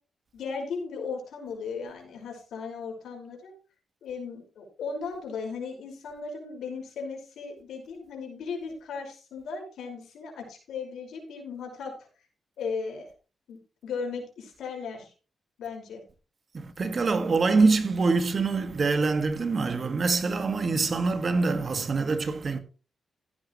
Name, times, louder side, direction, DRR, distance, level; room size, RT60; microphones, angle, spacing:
voice 1, 0.3-3.5 4.0-12.1 12.6-13.1 13.5-15.1 15.6-16.0, left 5 dB, 90° left, 5.5 m, -36 dB
voice 2, 16.5-22.6, right 4 dB, 45° right, 1.9 m, -25 dB
15.0 x 9.7 x 3.2 m
cardioid pair, 85°, 0 cm